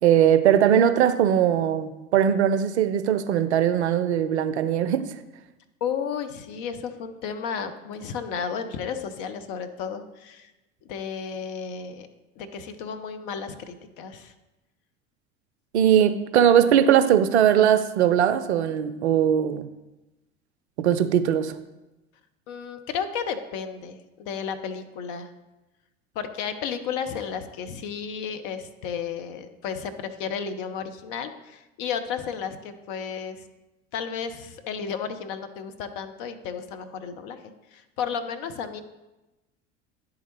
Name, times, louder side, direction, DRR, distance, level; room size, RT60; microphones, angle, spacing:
voice 1, 0.0-5.1 15.7-19.7 20.8-21.5, right 9 dB, 65° right, 11 dB, 0.5 m, -20 dB
voice 2, 5.8-10.5 10.8-12.1 12.4-14.3 22.5-25.3 26.1-33.4 33.9-37.4 37.7-38.8, left 7 dB, 45° left, 8 dB, 0.6 m, -33 dB
10.0 x 3.7 x 3.0 m, 1.0 s
figure-of-eight pair, 70°, 36 cm